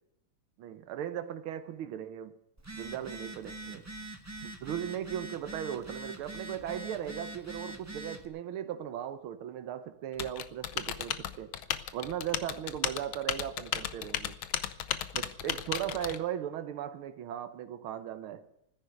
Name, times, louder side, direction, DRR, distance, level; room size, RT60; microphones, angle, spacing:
voice 1, 0.6-2.4 2.7-3.9 4.4-11.5 11.9-14.3 15.1-18.5, right 10 dB, 85° right, 1.7 m, -37 dB
Telephone, 2.6-8.2, right 2 dB, 10° right, 0.7 m, -43 dB
Typing, 10.2-16.2, left 11 dB, 80° left, 1.7 m, -35 dB
14.5 x 10.5 x 8.0 m
omnidirectional pair, 2.3 m